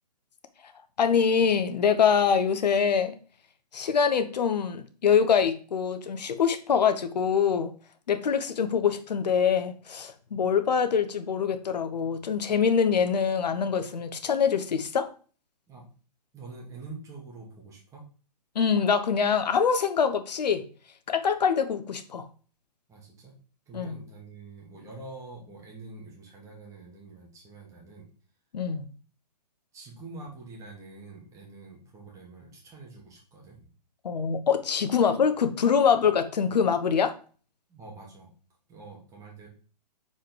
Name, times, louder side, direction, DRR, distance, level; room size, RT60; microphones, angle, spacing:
voice 1, 1.0-3.1 3.7-7.7 8.1-15.1 18.5-20.7 21.1-22.2 23.7-23.9 28.5-28.9 34.0-37.1, left 6 dB, 75° left, 9 dB, 1.0 m, -24 dB
voice 2, 16.3-18.0 22.9-23.3 23.7-28.1 29.7-33.6 35.9-36.0 37.7-38.3 38.7-39.5, right 3 dB, 15° right, -2 dB, 2.1 m, -45 dB
4.9 x 4.8 x 4.6 m, 0.39 s
hypercardioid pair, 145°, 21 cm